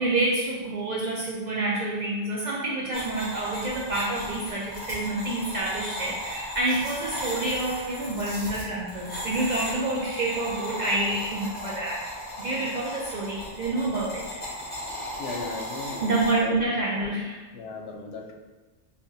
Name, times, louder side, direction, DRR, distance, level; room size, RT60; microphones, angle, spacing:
voice 1, 0.0-12.0 12.4-14.4 16.0-17.4, right 2 dB, 55° right, -5 dB, 0.5 m, -28 dB
sound 1, 2.9-16.4, equal, 10° left, 1.1 m, -36 dB
voice 2, 14.9-16.1 16.4-16.6 17.0-17.1 17.5-18.3, left 4 dB, 80° left, 3 dB, 0.8 m, -37 dB
5.2 x 2.4 x 2.6 m, 1.2 s
omnidirectional pair, 1.1 m